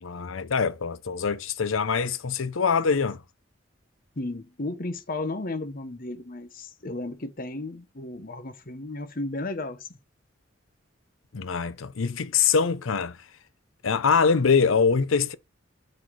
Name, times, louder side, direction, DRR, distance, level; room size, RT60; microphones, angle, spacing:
voice 1, 0.0-3.2 11.3-13.2 13.8-15.3, left 5 dB, 85° left, 0.6 m, -24 dB
voice 2, 4.2-10.0, left 2 dB, 45° left, 1.0 m, -34 dB
6.3 x 4.3 x 4.7 m
head